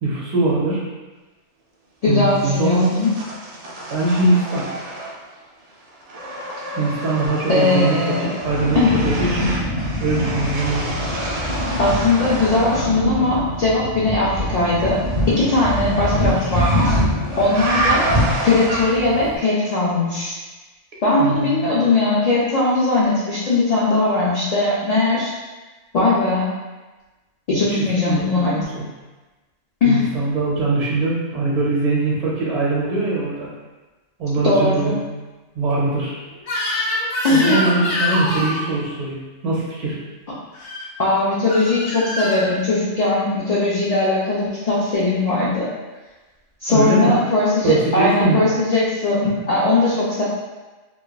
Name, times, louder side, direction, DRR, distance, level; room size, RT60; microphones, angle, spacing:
voice 1, 0.0-0.8 2.1-2.9 3.9-4.6 6.8-9.5 10.0-10.9 16.1-16.4 21.2-21.7 27.5-27.6 28.0-28.8 29.8-33.5 34.2-35.0 35.5-36.1 37.3-39.1 39.4-40.0 46.7-47.2 47.6-48.5, right 2 dB, 40° right, -5 dB, 0.7 m, -21 dB
voice 2, 2.0-3.1 7.5-8.3 8.7-9.0 11.8-15.0 15.3-17.0 17.4-18.1 18.4-20.4 21.0-25.3 25.9-26.5 27.5-28.6 29.8-30.1 34.4-34.9 37.2-37.6 41.0-45.7 46.6-50.2, left 2 dB, 55° left, -7 dB, 0.4 m, -19 dB
sound 1, 2.3-5.4 5.7-13.0 14.5-19.2, right 1 dB, 70° right, 0.3 m, -29 dB
sound 2, 8.4-19.4, equal, 30° left, 0.8 m, -25 dB
Crying sobbing / Screech, 36.4-38.6 40.5-40.8 41.5-42.5, left 1 dB, 75° left, 0.9 m, -24 dB
2.9 x 2.3 x 2.3 m, 1.2 s
omnidirectional pair, 1.2 m